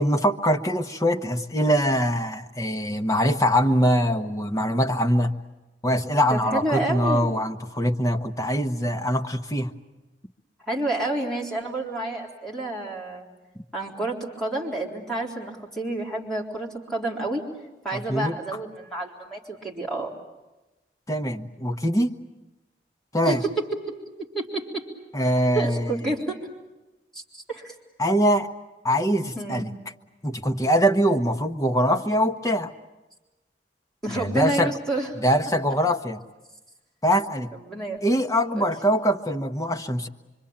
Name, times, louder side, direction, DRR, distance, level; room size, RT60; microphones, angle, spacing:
voice 1, 0.0-5.3 5.8-9.7 13.6-13.7 17.9-18.3 21.1-22.2 23.1-23.4 25.1-25.9 28.0-28.5 28.8-29.7 30.2-32.7 34.1-34.7 35.2-36.2 37.0-37.5 38.0-40.1, equal, 20° left, 4 dB, 1.1 m, -23 dB
voice 2, 6.3-7.3 10.7-13.3 13.7-17.4 17.8-20.1 23.2-23.6 24.2-24.9 25.5-26.4 27.1-27.7 29.4-29.7 34.0-35.1 37.6-38.0 38.6-38.7, right 2 dB, 5° left, -3 dB, 3.9 m, -29 dB
25.5 x 25.0 x 8.8 m, 1.1 s
head